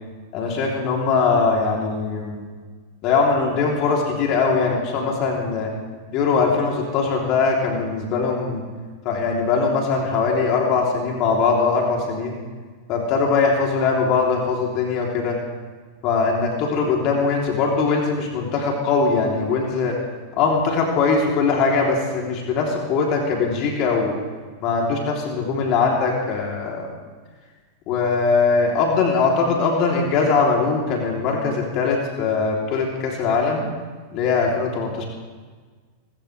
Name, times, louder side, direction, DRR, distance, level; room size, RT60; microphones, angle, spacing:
voice 1, 0.3-2.4 3.0-5.7 6.1-8.6 9.0-12.4 12.9-15.4 16.0-20.0 20.3-24.1 24.6-26.9 27.9-33.6 34.1-35.0, left 4 dB, 50° left, -1 dB, 3.2 m, -21 dB
26.0 x 14.0 x 3.4 m, 1.4 s
hypercardioid pair, 100°, 0 cm